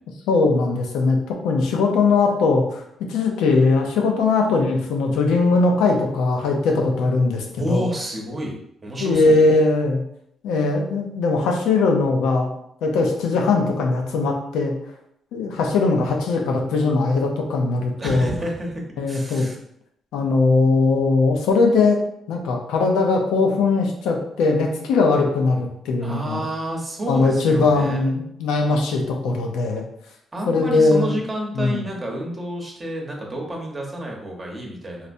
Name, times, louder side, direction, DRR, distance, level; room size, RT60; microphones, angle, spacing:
voice 1, 0.3-2.8 3.1-7.9 9.0-10.0 10.4-12.5 12.8-14.7 15.3-18.3 19.0-19.5 20.1-22.0 22.3-26.4 27.1-29.8 30.5-31.1 31.5-31.8, left 3 dB, 90° left, 2 dB, 0.6 m, -20 dB
voice 2, 7.5-9.4 18.0-19.6 26.0-28.0 30.3-35.1, right 1 dB, 25° right, -1 dB, 0.9 m, -30 dB
4.0 x 2.1 x 2.6 m, 0.73 s
cardioid pair, 90°, 0 cm